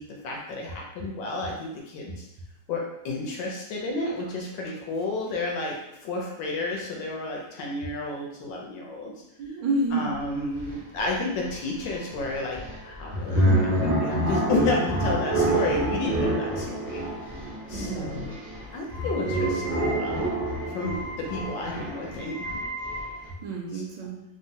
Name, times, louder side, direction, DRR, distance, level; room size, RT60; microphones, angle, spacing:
voice 1, 0.0-2.3 2.7-9.1 9.9-17.0 17.7-18.4 18.7-20.3 20.7-22.6 23.7-23.8, left 2 dB, 70° left, -1 dB, 1.2 m, -31 dB
voice 2, 9.4-10.2 17.7-18.2 23.4-24.2, right 2 dB, 75° right, 0 dB, 1.2 m, -29 dB
sound 1, 10.2-10.3 10.6-23.3, right 1 dB, 50° right, 0.4 m, -27 dB
3.5 x 2.1 x 2.7 m, 0.88 s
omnidirectional pair, 2.3 m